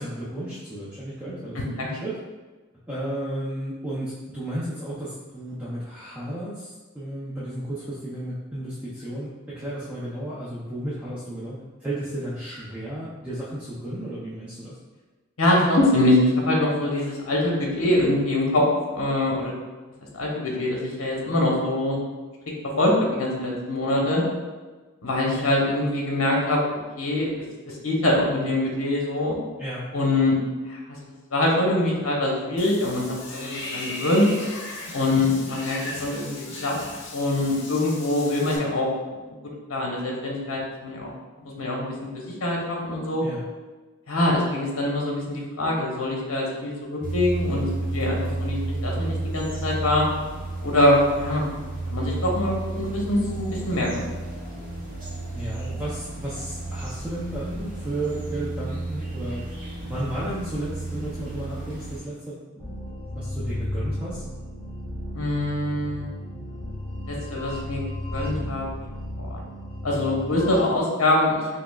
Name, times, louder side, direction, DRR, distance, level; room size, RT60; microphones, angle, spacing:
voice 1, 0.0-2.2 2.9-14.8 29.6-29.9 43.2-43.5 55.3-59.4 59.8-64.2, right 1 dB, 5° right, -10 dB, 0.4 m, -33 dB
voice 2, 15.4-18.6 18.9-19.5 20.1-22.0 22.8-24.2 25.0-29.4 29.9-30.4 30.7-30.8 31.3-34.3 34.9-36.7 37.1-38.9 39.7-41.1 41.4-43.2 44.1-50.1 50.6-51.4 51.9-54.1 65.1-66.1 67.1-68.7 69.2-69.4 69.8-71.3, left 1 dB, 70° left, -2 dB, 0.9 m, -24 dB
Water / Bathtub (filling or washing), 32.6-38.6, left 2 dB, 55° left, 0.6 m, -37 dB
sound 1, 47.0-62.0, right 2 dB, 40° right, 1.0 m, -32 dB
sound 2, 62.6-70.6, left 1 dB, 15° left, 1.3 m, -34 dB
5.7 x 2.0 x 2.3 m, 1.3 s
head